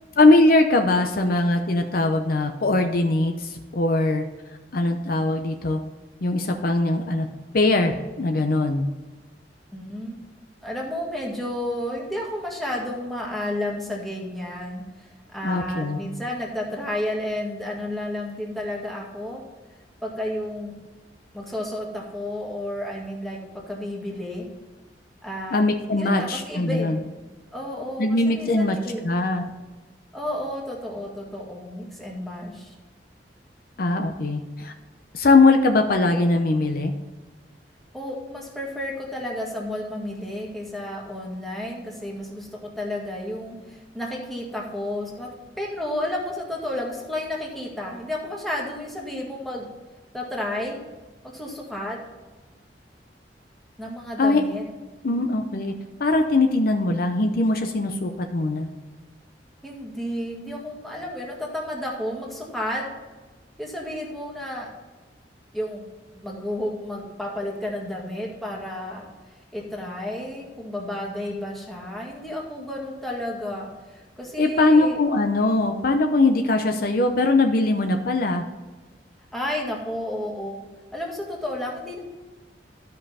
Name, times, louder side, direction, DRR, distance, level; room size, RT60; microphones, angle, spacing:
voice 1, 0.2-4.2 4.7-5.8 6.2-7.3 7.5-8.9 15.4-16.0 25.5-27.0 28.0-28.8 29.0-29.5 33.8-34.7 35.1-36.9 54.2-54.4 55.0-55.7 56.0-58.7 74.4-78.4, left 2 dB, 55° left, 5 dB, 0.7 m, -21 dB
voice 2, 9.7-10.2 10.6-19.4 20.0-20.8 21.3-24.5 25.2-25.6 26.0-27.0 27.5-29.0 30.1-32.8 37.9-45.3 45.6-49.7 50.1-50.8 51.3-52.0 53.8-54.6 55.1-55.2 59.6-62.8 63.6-64.7 65.5-65.9 66.1-69.1 69.5-75.0 79.3-80.6 80.9-82.0, left 1 dB, ahead, -2 dB, 1.8 m, -32 dB
12.5 x 5.4 x 4.2 m, 1.2 s
head